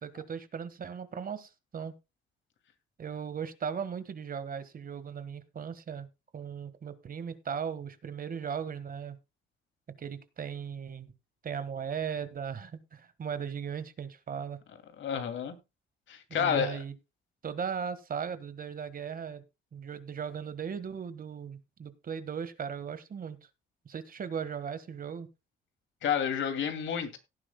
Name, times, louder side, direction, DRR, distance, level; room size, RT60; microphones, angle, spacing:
voice 1, 0.0-1.9 3.0-6.1 6.3-9.2 10.0-11.1 11.4-14.6 16.3-16.9 17.4-19.4 19.7-23.4 23.8-25.3, right 7 dB, 45° right, 1.5 m, -37 dB
voice 2, 15.0-15.6 16.1-16.8 26.0-27.2, left 8 dB, 70° left, 2.5 m, -30 dB
17.5 x 9.9 x 2.2 m
cardioid pair, 90°, 20 cm